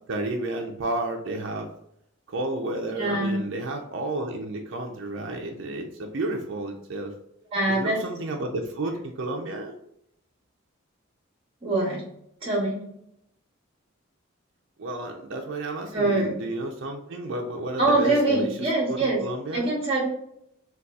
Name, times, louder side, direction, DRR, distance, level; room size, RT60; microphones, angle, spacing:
voice 1, 0.1-1.7 2.3-7.1 7.7-9.7 14.8-18.5 18.9-19.7, right 2 dB, 60° right, 2 dB, 0.4 m, -31 dB
voice 2, 2.9-3.4 7.5-8.0 11.6-12.0 12.4-12.9 15.9-16.4 17.8-19.2 19.5-20.1, right 2 dB, 25° right, -2 dB, 0.9 m, -24 dB
3.9 x 2.3 x 2.3 m, 0.75 s
head